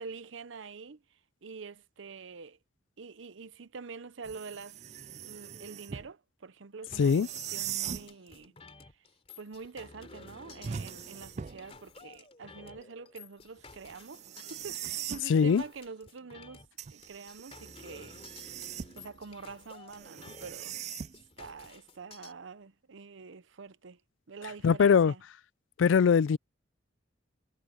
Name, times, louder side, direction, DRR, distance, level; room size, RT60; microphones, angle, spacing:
voice 1, 0.0-2.6 3.0-4.8 5.2-8.5 9.4-16.6 16.9-18.5 19.0-20.8 21.4-24.0 24.3-25.2, right 4 dB, 85° right, 0.7 m, -46 dB
sound 1, 4.2-6.1 6.9-8.1 10.6-11.7 13.9-15.3 16.8-19.1 19.9-21.4, right 9 dB, 35° right, 0.3 m, -41 dB
sound 2, 6.8-22.3, left 4 dB, 30° left, 3.2 m, -53 dB
voice 2, 15.3-15.6 24.6-25.1 25.8-26.4, left 6 dB, 80° left, 0.4 m, -22 dB
head